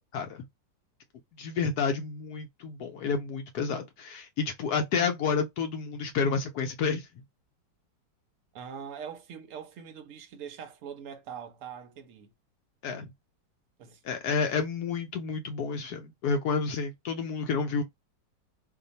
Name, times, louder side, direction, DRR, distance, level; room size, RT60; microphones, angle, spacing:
voice 1, 1.4-7.1 12.8-13.1 14.0-17.8, left 5 dB, 70° left, 1.0 m, -30 dB
voice 2, 8.5-12.3 13.8-14.0, right 7 dB, 70° right, 0.7 m, -42 dB
2.7 x 2.5 x 3.9 m
omnidirectional pair, 2.0 m